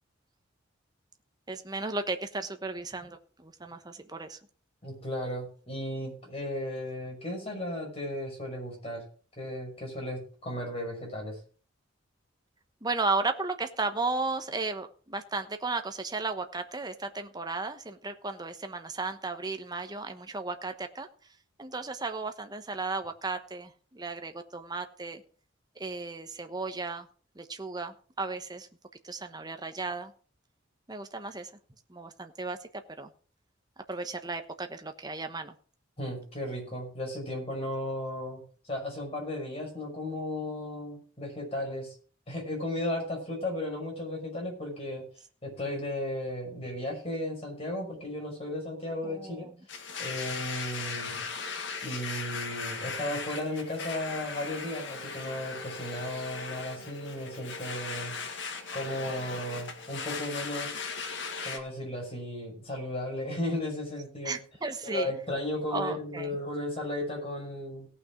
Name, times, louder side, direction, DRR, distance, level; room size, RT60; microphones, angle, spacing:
voice 1, 1.5-4.4 12.8-21.1 21.6-25.2 25.8-27.1 27.3-28.7 29.0-30.1 30.9-31.5 31.9-32.7 33.0-33.1 33.9-35.5 49.0-49.5 64.2-65.1 65.7-66.4, right 3 dB, 20° right, 7 dB, 1.0 m, -34 dB
voice 2, 4.8-9.0 9.4-11.4 36.0-41.9 42.3-45.0 45.4-49.5 50.0-51.2 51.8-58.2 58.7-60.8 61.4-64.3 64.8-67.9, left 1 dB, 30° left, 0 dB, 5.8 m, -35 dB
Domestic sounds home sounds, 49.7-61.6, left 5 dB, 65° left, 1.8 m, -38 dB
17.5 x 6.1 x 5.1 m, 0.41 s
head